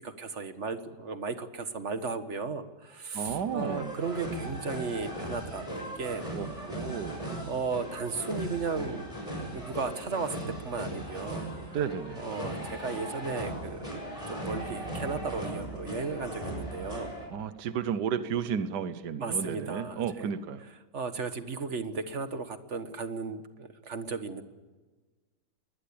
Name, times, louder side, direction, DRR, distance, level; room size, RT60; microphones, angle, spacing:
voice 1, 0.0-6.2 7.5-9.2 9.5-11.4 12.2-17.1 19.2-20.3 20.9-24.4, right 4 dB, 45° right, 9 dB, 1.7 m, -35 dB
voice 2, 3.1-4.0 6.3-7.2 11.7-12.2 17.3-20.6, right 7 dB, 75° right, 12 dB, 1.6 m, -33 dB
sound 1, 3.3-17.3, right 1 dB, 20° left, 6.9 m, -38 dB
22.0 x 20.0 x 8.7 m, 1.3 s
omnidirectional pair, 1.8 m